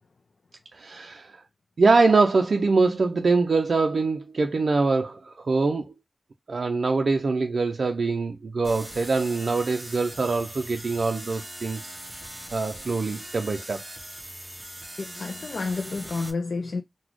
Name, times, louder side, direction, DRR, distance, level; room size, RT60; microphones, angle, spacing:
voice 1, 0.7-1.4 1.8-5.9 6.5-12.0 12.5-13.8, right 3 dB, 80° right, 0.4 m, -23 dB
sound 1, 8.6-16.3, right 1 dB, 15° right, 1.0 m, -41 dB
voice 2, 15.0-16.8, left 3 dB, 80° left, 0.3 m, -30 dB
3.9 x 2.1 x 2.9 m
wide cardioid pair, 60°, 0 cm